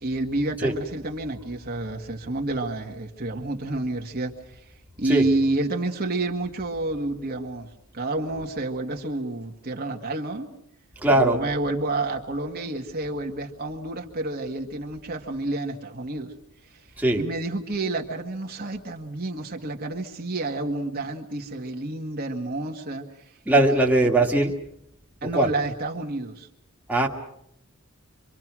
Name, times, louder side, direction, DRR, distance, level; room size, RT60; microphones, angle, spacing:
voice 1, 0.0-4.6 5.0-10.5 11.1-16.3 17.2-23.0 23.7-23.8 25.2-26.5, right 2 dB, 45° right, 2 dB, 1.7 m, -29 dB
voice 2, 11.0-11.4 17.0-17.2 23.5-24.5 25.3-25.5 26.9-27.1, right 2 dB, 5° right, -1 dB, 1.9 m, -20 dB
26.0 x 25.5 x 6.2 m, 0.76 s
head